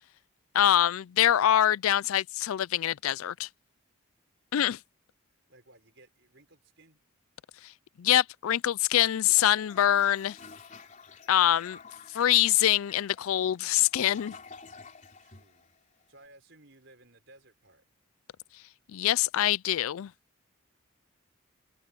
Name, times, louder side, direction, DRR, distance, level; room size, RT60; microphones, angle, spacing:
voice 1, 0.5-3.5 4.5-4.8 7.6-7.7 8.0-10.4 11.3-11.8 12.1-14.4 18.9-20.1, left 12 dB, 75° left, 0.4 m, -24 dB
voice 2, 5.5-7.0 15.2-15.8 16.1-17.8, right 2 dB, 55° right, 5.5 m, -58 dB
Toilet flush, 9.3-16.2, left 5 dB, 35° left, 4.0 m, -50 dB
head